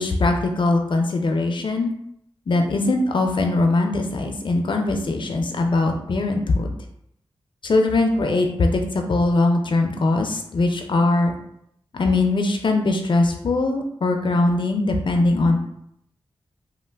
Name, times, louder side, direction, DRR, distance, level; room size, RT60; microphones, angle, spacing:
voice 1, 0.0-1.9 2.5-6.7 7.6-11.4 11.9-15.6, left 2 dB, 55° left, 3 dB, 0.5 m, -21 dB
3.0 x 2.1 x 3.4 m, 0.73 s
cardioid pair, 60°, 10 cm